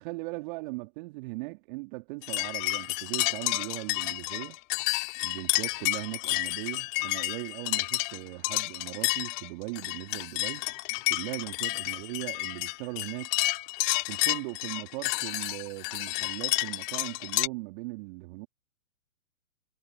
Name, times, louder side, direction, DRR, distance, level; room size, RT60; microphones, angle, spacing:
voice 1, 0.0-4.6 5.2-10.6 11.1-13.3 14.1-18.5, right 25 dB, 35° right, 3.7 m, -39 dB
sound 1, 2.2-17.5, left 28 dB, 35° left, 4.7 m, -30 dB
figure-of-eight pair, 130°, 45 cm